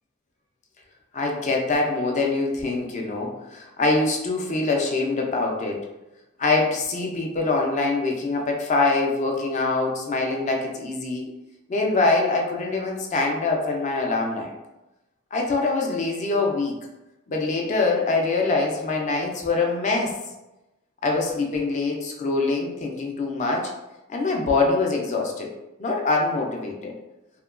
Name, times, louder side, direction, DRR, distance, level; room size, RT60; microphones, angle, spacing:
voice 1, 1.1-5.8 6.4-11.2 11.7-14.6 15.3-16.8 17.3-20.2 21.0-23.7 24.1-25.5 25.8-26.9, left 3 dB, 35° left, 0 dB, 0.4 m, -24 dB
2.8 x 2.2 x 2.4 m, 1.0 s
head